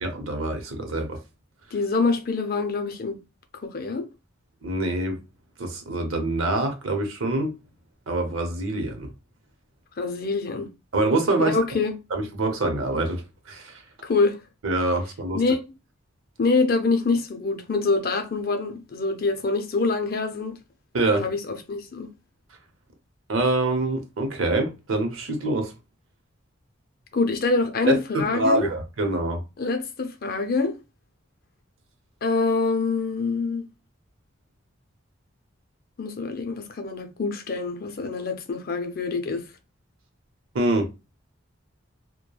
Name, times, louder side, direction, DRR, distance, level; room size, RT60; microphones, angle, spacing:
voice 1, 0.0-1.2 4.6-5.2 5.6-7.5 8.1-9.1 10.9-11.6 12.1-13.8 14.6-15.4 20.9-21.3 23.3-25.7 27.9-29.4 40.5-40.9, right 2 dB, 90° right, 0.7 m, -25 dB
voice 2, 1.7-3.2 3.6-4.1 10.0-10.7 11.4-12.0 14.0-14.4 15.3-15.6 16.4-20.6 21.1-22.1 27.1-28.7 29.6-30.8 32.2-33.7 36.0-39.5, left 3 dB, 50° left, 0.5 m, -25 dB
3.1 x 2.1 x 2.3 m
head